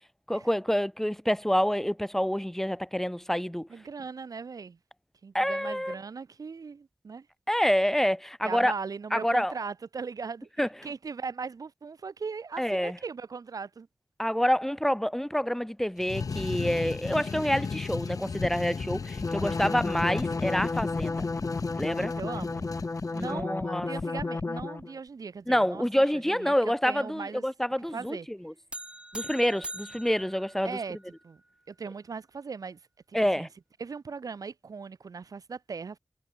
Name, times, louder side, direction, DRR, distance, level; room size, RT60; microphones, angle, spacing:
voice 1, 0.3-3.7 5.3-5.9 7.5-8.7 9.1-9.5 10.6-10.7 12.6-13.0 14.2-21.2 21.7-22.1 23.2-23.9 25.5-28.5 29.1-30.8 33.1-33.5, equal, 5° left, 1.6 m, -27 dB
voice 2, 3.7-4.8 5.2-7.3 8.4-13.9 19.3-19.6 22.0-22.7 23.1-25.8 26.2-27.4 27.9-28.3 30.6-31.0 31.2-31.4 31.7-32.8 33.1-33.5 33.8-36.0, right 5 dB, 80° right, 1.6 m, -39 dB
sound 1, 16.0-23.4, left 5 dB, 75° left, 1.2 m, -36 dB
sound 2, 19.2-24.9, left 3 dB, 40° left, 0.8 m, -32 dB
sound 3, 28.7-31.2, right 1 dB, 15° right, 1.5 m, -42 dB
wide cardioid pair, 100°, 6 cm